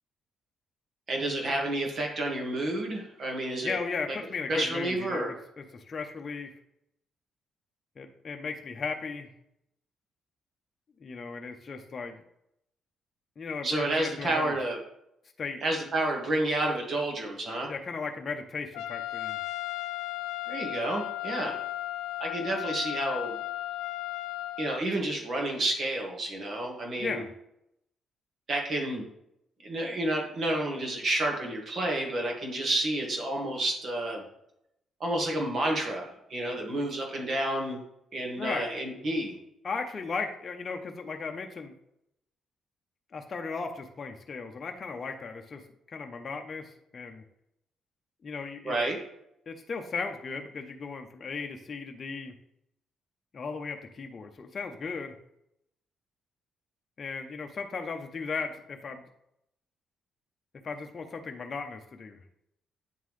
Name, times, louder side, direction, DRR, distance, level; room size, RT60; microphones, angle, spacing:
voice 1, 1.1-3.8 4.1-4.2 4.5-5.3 13.6-14.8 15.6-17.7 20.5-21.6 22.2-23.3 24.6-27.2 28.5-29.0 29.6-34.2 35.0-37.8 38.1-39.4 48.6-49.0, right 1 dB, 50° right, 0 dB, 1.8 m, -30 dB
voice 2, 3.6-6.5 8.0-9.3 11.0-12.2 13.4-14.6 15.4-15.6 17.7-19.4 27.0-27.3 38.4-38.7 39.6-41.7 43.1-45.6 45.9-47.2 48.2-48.8 49.5-52.3 53.3-55.1 57.0-59.0 60.6-62.2, left 4 dB, 40° left, 4 dB, 0.7 m, -36 dB
Trumpet, 18.7-24.8, left 14 dB, 90° left, 0.3 m, -35 dB
9.1 x 3.7 x 3.2 m, 0.80 s
cardioid pair, 90°, 0 cm